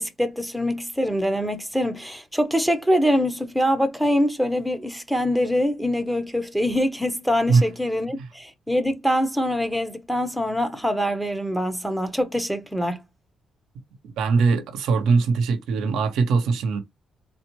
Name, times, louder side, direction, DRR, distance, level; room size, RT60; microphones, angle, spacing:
voice 1, 0.0-13.0, equal, ahead, 0.9 m, -24 dB
voice 2, 14.2-16.8, right 4 dB, 80° right, 0.9 m, -21 dB
3.9 x 2.1 x 3.0 m
cardioid pair, 90°, 0 cm